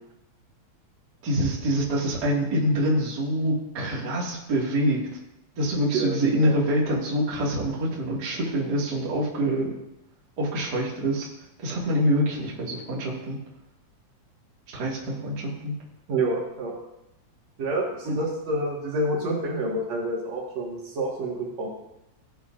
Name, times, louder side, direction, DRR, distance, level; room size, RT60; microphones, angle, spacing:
voice 1, 1.2-5.0 5.5-9.7 10.4-11.3 11.6-13.4 14.7-15.7 18.1-18.2, equal, 35° right, -4 dB, 2.4 m, -25 dB
voice 2, 5.9-6.5 16.1-16.8 17.6-21.7, right 1 dB, 65° right, -3 dB, 3.0 m, -28 dB
17.0 x 8.1 x 2.6 m, 0.86 s
omnidirectional pair, 3.3 m